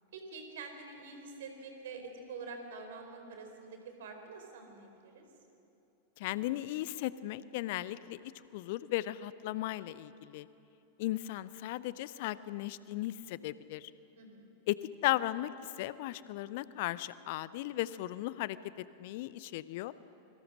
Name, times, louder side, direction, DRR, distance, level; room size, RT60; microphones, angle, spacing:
voice 1, 0.1-5.3 14.2-14.5, right 4 dB, 60° right, 5 dB, 4.4 m, -46 dB
voice 2, 6.2-8.2 8.5-10.5 11.0-13.9 14.7-14.8 15.0-15.5 15.8-19.9, left 16 dB, 50° left, 17 dB, 0.6 m, -36 dB
25.5 x 23.5 x 6.4 m, 2.8 s
figure-of-eight pair, 90°, 0 cm